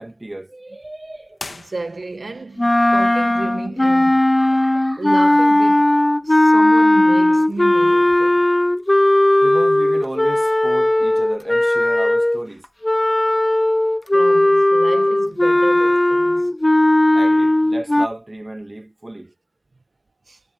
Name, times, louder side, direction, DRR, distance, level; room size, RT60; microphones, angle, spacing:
voice 1, 0.0-1.4 2.8-2.9 4.2-5.1 9.4-12.7 16.3-16.4 17.1-19.3, right 1 dB, 35° right, 1.8 m, -33 dB
sound 1, 1.3-2.4, left 3 dB, 70° left, 1.4 m, -37 dB
voice 2, 1.5-4.2 5.0-6.0 6.2-8.4 14.1-16.6 20.3-20.4, right 3 dB, 80° right, 1.0 m, -32 dB
sound 2, 2.6-12.4 12.8-18.1, left 1 dB, 25° left, 0.3 m, -16 dB
wide cardioid pair, 55°, 0 cm